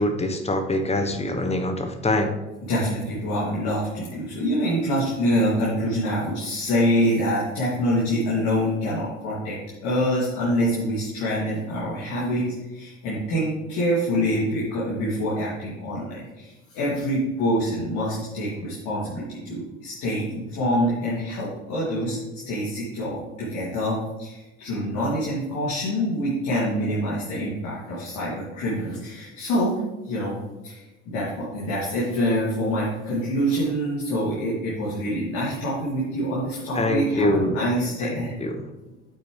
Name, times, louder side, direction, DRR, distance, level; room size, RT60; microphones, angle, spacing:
voice 1, 0.0-2.4 36.7-37.6 38.1-38.6, left 1 dB, 20° left, 7 dB, 1.1 m, -24 dB
voice 2, 2.6-22.2 22.5-30.4 30.6-38.4, equal, 60° left, -7 dB, 2.7 m, -26 dB
8.9 x 8.2 x 3.3 m, 1.1 s
hypercardioid pair, 65°, 34 cm